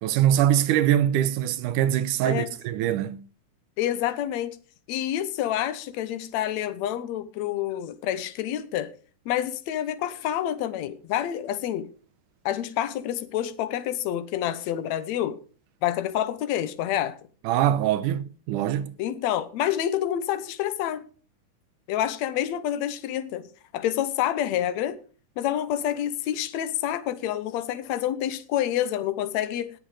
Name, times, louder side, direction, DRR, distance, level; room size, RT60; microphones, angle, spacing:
voice 1, 0.0-3.2 17.4-18.9, right 11 dB, 90° right, 2.4 m, -23 dB
voice 2, 3.8-4.6 4.9-8.9 9.3-11.9 12.5-15.4 15.8-17.2 19.0-21.1 21.9-23.5 23.7-25.0 25.4-29.7, left 11 dB, 70° left, 2.2 m, -28 dB
19.5 x 6.9 x 4.9 m
omnidirectional pair, 3.6 m